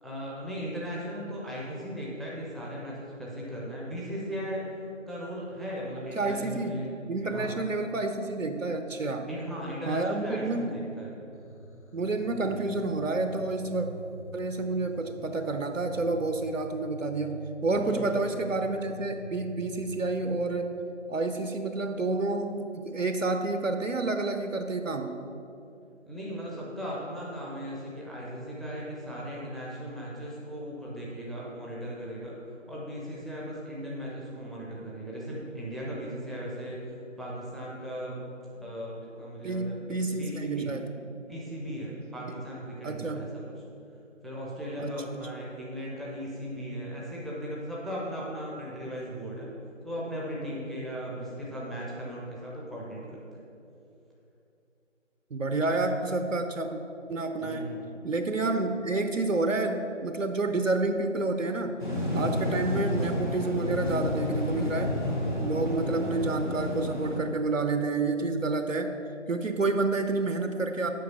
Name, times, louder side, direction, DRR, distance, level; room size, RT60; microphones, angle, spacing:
voice 1, 0.0-4.7 5.1-6.9 7.3-7.6 9.3-11.1 17.8-18.2 26.1-32.3 32.7-36.8 37.2-38.2 38.5-40.7 41.3-43.4 44.2-49.5 49.8-53.4 57.4-58.0, equal, ahead, -6 dB, 0.7 m, -37 dB
voice 2, 6.2-9.3 9.9-10.9 11.9-13.9 14.3-20.7 21.1-25.2 39.4-40.9 42.8-43.3 44.8-45.0 55.3-56.8 57.1-57.7 58.0-61.7 62.1-65.0 65.4-68.9 69.3-70.9, right 3 dB, 80° right, 7 dB, 0.7 m, -29 dB
sound 1, 11.3-20.4, right 1 dB, 60° left, 0.9 m, -45 dB
sound 2, 61.8-67.2, left 1 dB, 40° left, 1.2 m, -30 dB
7.7 x 5.2 x 5.5 m, 2.7 s
figure-of-eight pair, 175°, 38 cm